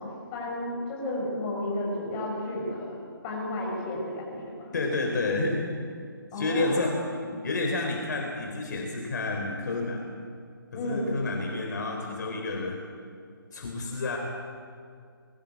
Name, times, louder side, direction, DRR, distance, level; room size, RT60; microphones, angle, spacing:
voice 1, 0.0-4.8 6.3-7.0 7.3-7.4 10.7-11.2, left 1 dB, 20° left, -2 dB, 6.9 m, -33 dB
voice 2, 4.7-5.6 6.3-7.0 7.4-10.1 10.7-12.8 13.5-14.2, left 2 dB, 50° left, 2 dB, 3.8 m, -29 dB
22.5 x 16.5 x 8.5 m, 2.2 s
hypercardioid pair, 160°, 12 cm